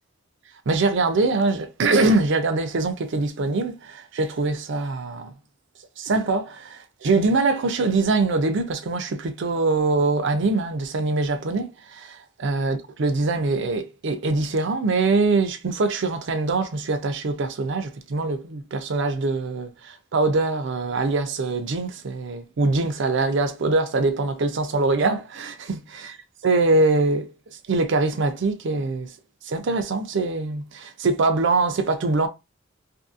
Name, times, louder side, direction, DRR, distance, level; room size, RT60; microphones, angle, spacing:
voice 1, 0.7-5.3 6.0-26.1 26.4-27.3 27.7-29.1 29.4-32.3, right 3 dB, 65° right, 0.5 m, -23 dB
2.7 x 2.6 x 2.5 m
head